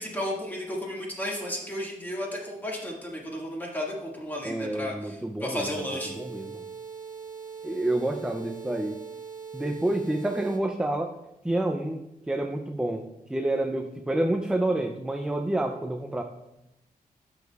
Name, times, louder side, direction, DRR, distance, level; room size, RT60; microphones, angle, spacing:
voice 1, 0.0-6.2, left 1 dB, 10° left, -3 dB, 1.8 m, -33 dB
voice 2, 4.4-5.8 6.2-6.6 7.6-9.0 9.5-11.1 11.4-12.0 12.3-16.2, right 1 dB, 5° right, 4 dB, 0.4 m, -28 dB
sound 1, 5.6-10.6, right 6 dB, 60° right, 1.5 m, -41 dB
12.0 x 6.3 x 2.3 m, 0.90 s
wide cardioid pair, 145°, 15 cm